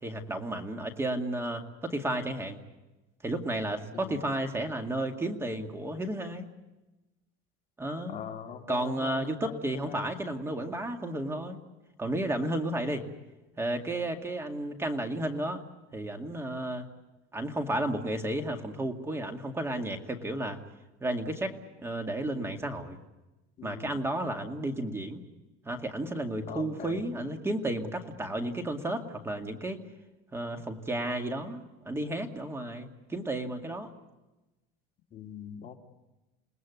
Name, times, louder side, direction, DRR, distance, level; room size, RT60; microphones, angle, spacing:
voice 1, 0.0-2.6 3.2-6.5 7.8-8.2 8.7-11.6 12.0-13.1 13.6-15.6 15.9-16.9 17.3-20.6 21.0-21.6 21.8-23.0 23.6-25.2 25.7-29.8 30.3-33.9, right 1 dB, 15° right, 5 dB, 2.1 m, -32 dB
voice 2, 3.9-4.2 8.0-10.1 23.6-24.0 26.5-27.0 35.1-35.7, left 8 dB, 35° left, 1 dB, 2.9 m, -42 dB
29.0 x 19.5 x 8.3 m, 1.1 s
cardioid pair, 150°, 19 cm